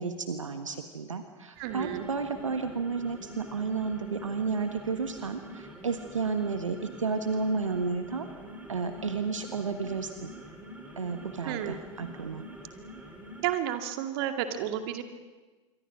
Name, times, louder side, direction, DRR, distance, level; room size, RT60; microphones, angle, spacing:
voice 1, 0.0-8.3 8.7-10.3 11.0-12.4, right 4 dB, 75° right, 8 dB, 1.5 m, -32 dB
sound 1, 1.6-13.5, equal, 10° right, 5.7 m, -46 dB
voice 2, 1.6-2.0 11.5-11.8 13.4-15.0, right 11 dB, 50° right, 7 dB, 2.2 m, -31 dB
27.0 x 24.0 x 6.2 m, 1.2 s
figure-of-eight pair, 85°, 16 cm